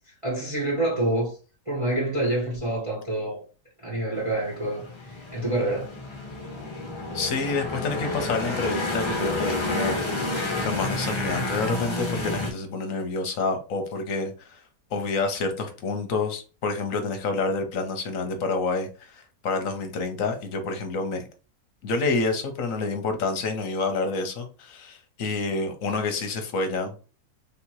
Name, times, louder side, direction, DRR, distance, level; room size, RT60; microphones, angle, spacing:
voice 1, 0.1-1.4 1.7-3.4 3.8-5.9, right 1 dB, 25° right, 1.1 m, -27 dB
sound 1, 4.1-12.5, left 2 dB, 25° left, 0.7 m, -30 dB
voice 2, 7.1-10.0 10.6-14.6 14.9-21.2 21.8-26.9, left 3 dB, 60° left, 1.1 m, -28 dB
3.6 x 2.8 x 4.5 m
omnidirectional pair, 1.7 m